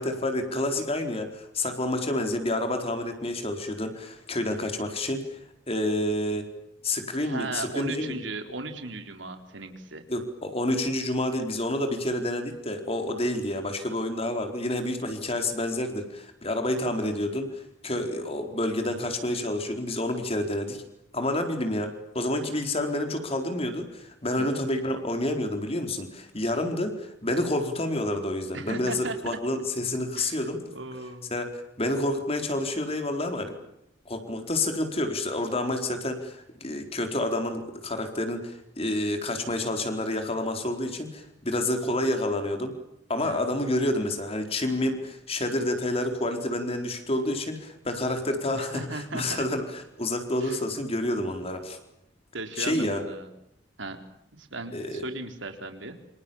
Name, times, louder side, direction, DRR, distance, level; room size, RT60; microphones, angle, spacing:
voice 1, 0.0-5.4 5.7-6.5 6.8-8.2 10.1-20.8 21.1-30.6 31.3-33.5 34.1-42.7 43.1-51.8 52.6-53.0 54.7-55.1, left 1 dB, 30° left, 6 dB, 4.4 m, -29 dB
voice 2, 7.2-10.1 24.4-24.7 28.5-29.4 30.1-31.3 43.2-43.4 48.5-49.4 50.4-50.6 51.0-51.2 52.3-53.3 53.8-54.0 54.4-55.9, right 3 dB, 75° right, 6 dB, 4.1 m, -37 dB
28.5 x 27.0 x 7.2 m, 0.80 s
head